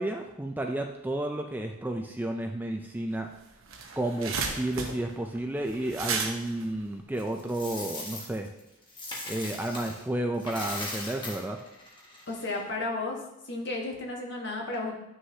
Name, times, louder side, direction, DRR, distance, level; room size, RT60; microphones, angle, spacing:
voice 1, 0.0-3.3 4.0-8.5 9.2-11.6, right 1 dB, 10° right, 4 dB, 0.3 m, -32 dB
sound 1, 3.2-3.3 3.5-7.8, right 5 dB, 70° right, 0.9 m, -34 dB
Coin (dropping), 7.2-10.0 10.3-12.6, left 2 dB, 20° left, 1.3 m, -39 dB
voice 2, 12.3-13.2 13.4-14.9, left 2 dB, 50° left, -1 dB, 1.4 m, -33 dB
9.5 x 6.3 x 2.8 m, 0.89 s
head